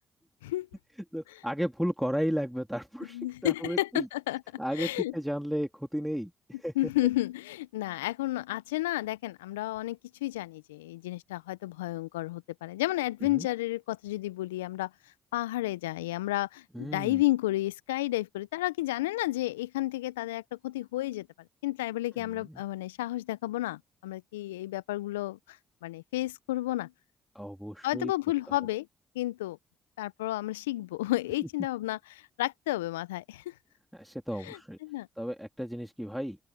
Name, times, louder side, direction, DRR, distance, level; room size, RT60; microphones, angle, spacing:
voice 1, 1.1-4.1 4.6-6.3 6.6-6.7 13.3-13.5 16.7-17.2 22.2-22.6 27.3-28.1 28.5-28.6 33.9-34.8 35.2-36.4, equal, ahead, 3.1 m, -34 dB
voice 2, 3.1-4.4 4.7-5.1 6.8-14.9 15.3-21.3 21.6-26.9 27.8-28.9 29.1-29.6 30.0-33.5 34.4-35.1, left 17 dB, 85° left, 0.7 m, -32 dB
open air
hypercardioid pair, 45°, 0 cm